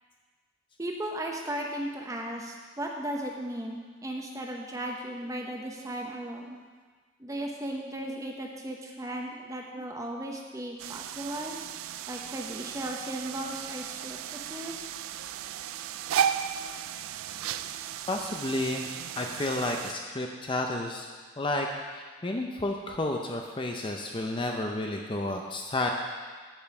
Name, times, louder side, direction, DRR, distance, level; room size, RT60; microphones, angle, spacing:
voice 1, 0.8-6.6 7.2-11.6 12.1-15.0, right 1 dB, 15° right, 0 dB, 0.9 m, -36 dB
sound 1, 10.8-19.9, right 9 dB, 75° right, 0.3 m, -35 dB
voice 2, 18.1-18.9 19.2-21.1 21.4-21.7 21.9-25.9, left 2 dB, 25° left, 2 dB, 0.5 m, -31 dB
9.0 x 5.4 x 7.0 m, 1.5 s
head